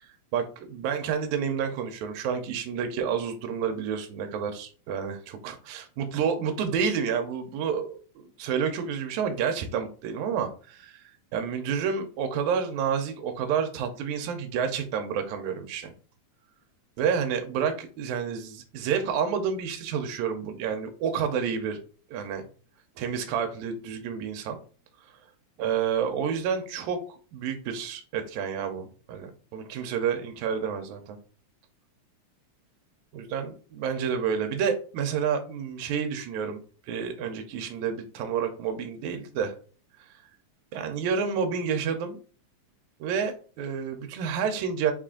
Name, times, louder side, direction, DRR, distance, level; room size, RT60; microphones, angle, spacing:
voice 1, 0.3-11.0 11.3-15.9 17.0-21.8 22.1-22.5 23.0-24.6 25.6-31.2 33.1-36.6 36.9-39.5 40.7-42.2 43.0-44.9, right 7 dB, 85° right, 6 dB, 2.0 m, -29 dB
5.0 x 2.4 x 3.7 m, 0.38 s
omnidirectional pair, 3.4 m